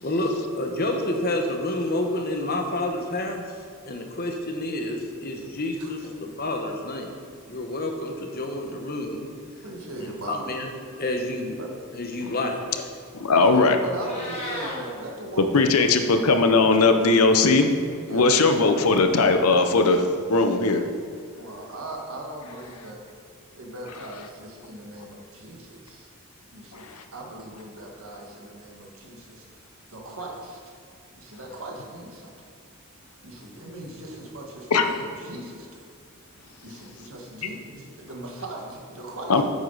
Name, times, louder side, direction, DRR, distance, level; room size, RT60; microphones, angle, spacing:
voice 1, 0.0-3.4 3.9-7.1 7.5-9.3 10.0-10.7 11.0-11.6 11.9-12.8, left 1 dB, 45° left, 3 dB, 1.0 m, -29 dB
voice 2, 9.6-10.5 11.6-11.7 13.3-16.2 16.8-17.0 17.2-17.5 18.0-18.8 21.4-23.0 23.5-26.1 26.5-30.7 31.2-32.3 33.2-35.8 36.6-39.4, right 1 dB, 65° right, -1 dB, 1.6 m, -39 dB
voice 3, 13.1-13.8 15.4-17.7 18.1-20.8 26.7-27.0 34.7-34.9 39.3-39.4, left 3 dB, 80° left, 7 dB, 0.8 m, -19 dB
Meow, 13.9-14.8, left 1 dB, 25° left, 1.8 m, -34 dB
9.3 x 8.0 x 4.0 m, 2.2 s
head